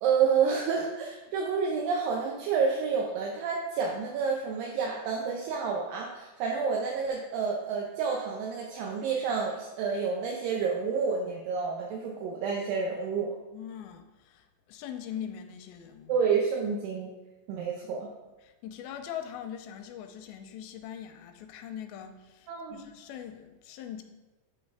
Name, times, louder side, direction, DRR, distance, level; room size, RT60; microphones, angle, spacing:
voice 1, 0.0-13.4 16.1-17.1 17.5-18.1 22.5-22.9, right 5 dB, 80° right, -1 dB, 2.4 m, -29 dB
voice 2, 13.5-16.1 17.8-18.0 18.4-24.0, left 9 dB, 90° left, 6 dB, 2.5 m, -42 dB
8.2 x 4.4 x 4.6 m, 1.1 s
omnidirectional pair, 4.2 m